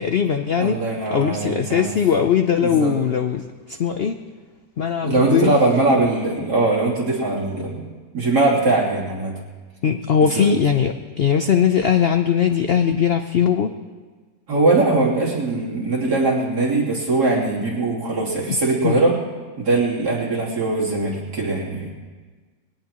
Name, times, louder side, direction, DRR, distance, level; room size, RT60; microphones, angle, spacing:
voice 1, 0.0-0.8 1.1-4.2 4.8-5.6 9.8-13.7 18.5-18.6 18.8-19.1, left 8 dB, 80° left, 6 dB, 0.5 m, -20 dB
voice 2, 0.6-1.9 2.6-2.9 5.0-7.9 8.1-9.3 10.4-10.5 14.5-19.1 19.6-21.9, right 2 dB, 65° right, -5 dB, 3.6 m, -21 dB
21.0 x 18.0 x 3.0 m, 1.4 s
omnidirectional pair, 1.8 m